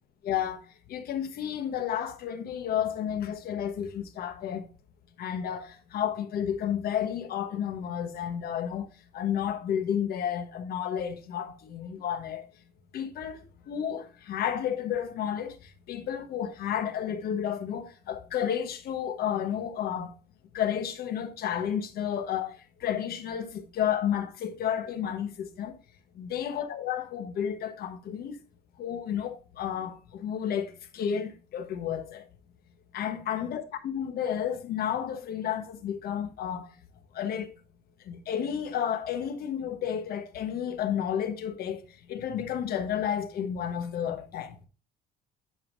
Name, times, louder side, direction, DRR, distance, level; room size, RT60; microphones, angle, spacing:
voice 1, 0.2-0.6 0.9-4.6 5.2-8.9 9.1-12.4 12.9-15.5 15.9-20.1 20.5-25.8 26.1-28.4 28.8-32.2 32.9-36.7 37.1-37.6 38.1-41.8 42.1-44.7, left 9 dB, 65° left, 1.2 m, -31 dB
10.0 x 5.5 x 2.6 m
cardioid pair, 110°, 17 cm